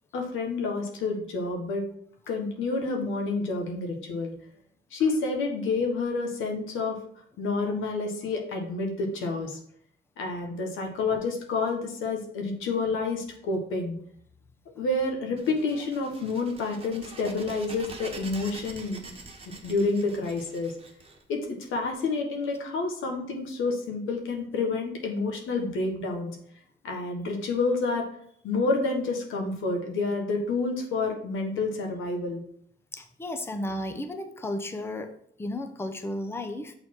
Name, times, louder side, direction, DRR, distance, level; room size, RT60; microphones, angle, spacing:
voice 1, 0.1-1.8 2.3-4.3 4.9-7.0 7.4-9.6 10.2-14.0 14.8-19.0 19.4-20.7 21.3-26.3 26.8-28.0 28.4-32.4, left 3 dB, 85° left, 2 dB, 1.5 m, -29 dB
sound 1, 15.4-21.9, right 3 dB, 30° right, 1.3 m, -45 dB
voice 2, 32.9-36.7, left 1 dB, 10° left, 6 dB, 0.7 m, -34 dB
6.7 x 4.0 x 4.6 m, 0.65 s
cardioid pair, 90°, 20 cm